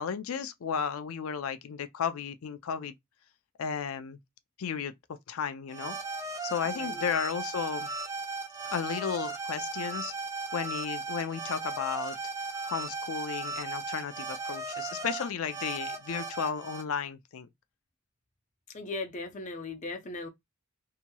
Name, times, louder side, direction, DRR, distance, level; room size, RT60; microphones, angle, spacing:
voice 1, 0.0-2.9 3.6-4.2 4.6-4.9 5.3-6.0 6.4-7.9 8.7-10.1 10.5-12.2 12.7-17.5, left 7 dB, 80° left, 0.4 m, -34 dB
sound 1, 5.7-16.8, right 3 dB, 15° right, 0.6 m, -36 dB
voice 2, 6.7-7.1 18.7-20.3, left 2 dB, 35° left, 0.6 m, -38 dB
2.9 x 2.8 x 2.2 m
head